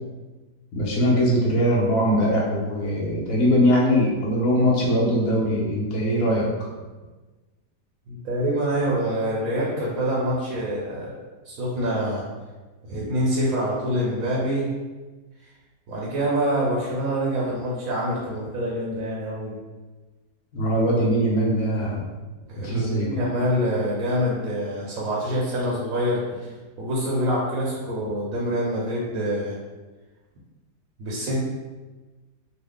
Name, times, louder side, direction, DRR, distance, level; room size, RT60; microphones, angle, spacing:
voice 1, 0.7-6.5 20.5-22.0 22.6-23.1, equal, 65° left, -4 dB, 1.0 m, -21 dB
voice 2, 8.1-11.1 11.5-12.3 12.8-14.7 15.9-19.6 22.5-26.4 26.8-29.6 31.0-31.4, equal, 65° right, -4 dB, 0.9 m, -26 dB
3.0 x 2.0 x 3.7 m, 1.2 s
omnidirectional pair, 1.8 m